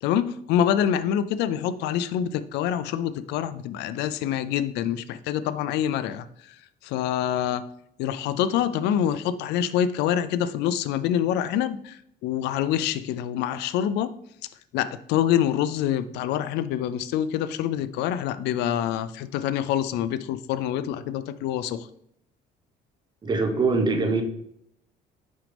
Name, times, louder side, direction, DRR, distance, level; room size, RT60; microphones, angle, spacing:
voice 1, 0.0-6.3 6.8-7.6 8.0-14.1 14.7-21.9, left 10 dB, 85° left, 14 dB, 0.4 m, -26 dB
voice 2, 23.2-24.2, right 3 dB, 25° right, 5 dB, 1.0 m, -23 dB
6.2 x 5.1 x 3.3 m, 0.72 s
cardioid pair, 110°, 17 cm